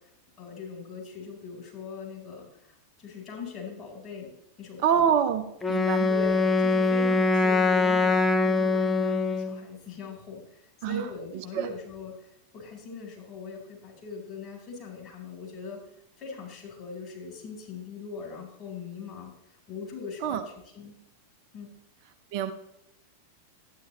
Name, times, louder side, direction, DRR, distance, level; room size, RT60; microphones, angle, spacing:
voice 1, 0.4-4.3 4.6-5.1 6.1-15.8 16.2-19.3 19.7-20.9 21.5-21.7, left 5 dB, 30° left, -2 dB, 4.7 m, -41 dB
voice 2, 4.8-6.1 10.8-11.0 11.6-11.7 20.2-20.4 22.3-22.5, right 8 dB, 45° right, 8 dB, 0.7 m, -25 dB
Wind instrument woodwind instrument, 5.6-9.6, left 3 dB, 15° left, 0.8 m, -23 dB
12.0 x 10.0 x 3.2 m, 0.83 s
figure-of-eight pair, 90°, 0 cm